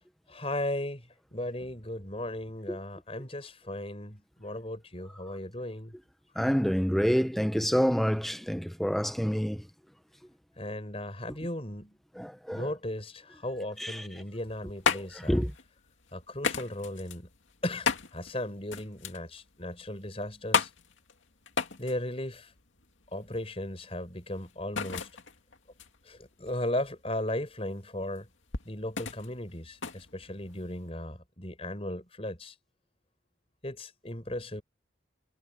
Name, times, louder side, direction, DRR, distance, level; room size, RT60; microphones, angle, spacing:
voice 1, 0.3-5.9 10.6-11.9 12.5-15.4 16.1-17.3 17.6-20.7 21.8-22.5 23.1-25.1 26.0-28.3 28.6-32.5 33.6-34.6, left 1 dB, 30° left, 5.1 m, -36 dB
voice 2, 6.4-9.6 12.2-12.6 13.8-13.9 15.3-15.5, equal, ahead, 0.9 m, -27 dB
sound 1, 14.3-30.9, left 5 dB, 80° left, 2.3 m, -35 dB
head